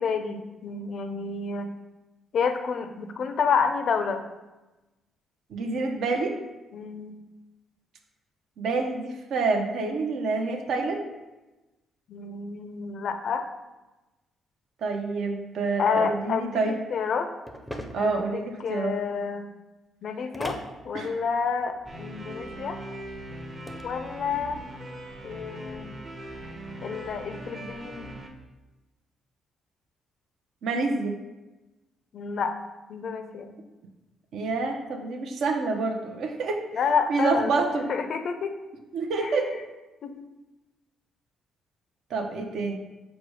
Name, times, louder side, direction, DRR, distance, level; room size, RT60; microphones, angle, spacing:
voice 1, 0.0-1.7 2.3-4.2 6.7-7.2 12.1-13.5 15.8-17.3 18.0-19.5 20.0-20.6 20.8-22.8 23.8-24.6 25.2-26.0 26.8-28.1 32.1-32.5 32.9-33.6 36.7-37.6 37.9-38.5 39.2-39.6 40.0-40.2, left 6 dB, 60° left, 8 dB, 0.4 m, -29 dB
voice 2, 5.5-6.3 8.6-11.1 14.8-16.7 17.9-19.0 20.9-21.2 30.6-31.1 34.3-36.6 37.1-37.9 38.9-39.5 42.1-42.8, right 3 dB, 70° right, 4 dB, 0.5 m, -27 dB
sound 1, 17.5-18.2 20.3-20.7 23.4-23.8, equal, 5° left, 0.5 m, -36 dB
sound 2, 21.9-28.3, right 1 dB, 40° right, 0.8 m, -40 dB
4.9 x 2.1 x 4.6 m, 1.1 s
cardioid pair, 90°, 0 cm